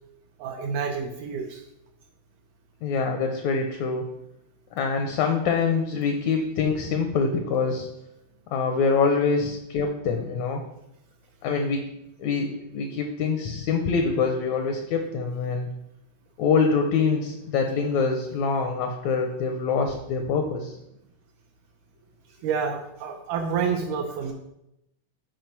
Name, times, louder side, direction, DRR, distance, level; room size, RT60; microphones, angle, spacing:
voice 1, 0.4-1.6 22.4-24.3, right 6 dB, 75° right, 2 dB, 2.0 m, -28 dB
voice 2, 2.8-4.1 4.7-7.9 8.5-10.6 11.4-11.8 12.2-15.7 16.4-20.7, left 5 dB, 75° left, 4 dB, 1.7 m, -25 dB
7.6 x 4.9 x 4.6 m, 0.83 s
omnidirectional pair, 3.9 m